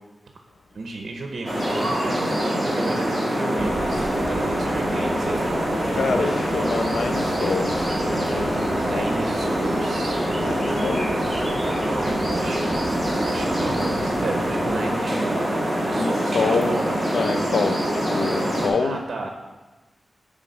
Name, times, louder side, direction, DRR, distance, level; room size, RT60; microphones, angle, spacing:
voice 1, 0.7-5.4 5.9-6.3 8.8-10.2 11.6-12.8 13.2-17.0 18.8-19.3, right 3 dB, 60° right, 2 dB, 0.7 m, -33 dB
sound 1, 1.5-18.7, equal, ahead, 1.8 m, -24 dB
sound 2, 3.6-14.8, right 1 dB, 25° right, 1.5 m, -38 dB
voice 2, 5.9-9.2 10.3-11.1 15.9-16.8 17.1-17.9 18.1-19.0, left 4 dB, 70° left, 9 dB, 0.5 m, -27 dB
10.5 x 3.5 x 5.5 m, 1.2 s
wide cardioid pair, 180°, 0 cm